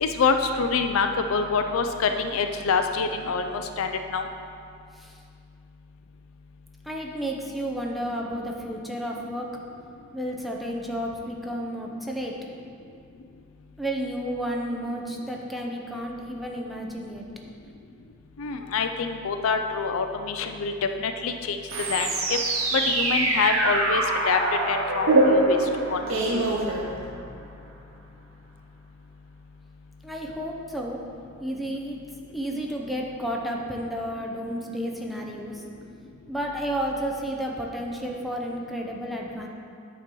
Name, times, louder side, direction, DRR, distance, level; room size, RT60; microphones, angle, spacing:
voice 1, 0.0-4.3 18.4-20.7 21.0-21.6 21.9-22.4 22.7-25.6 25.9-26.0 26.3-26.4, left 5 dB, 80° left, 6 dB, 0.4 m, -26 dB
voice 2, 6.8-9.5 10.1-12.3 13.8-17.2 30.0-31.0 31.4-32.0 32.3-35.6 36.3-39.5, equal, ahead, -1 dB, 0.5 m, -31 dB
sound 1, 21.7-27.4, right 2 dB, 70° right, 0.9 m, -24 dB
8.6 x 3.0 x 5.3 m, 2.4 s
head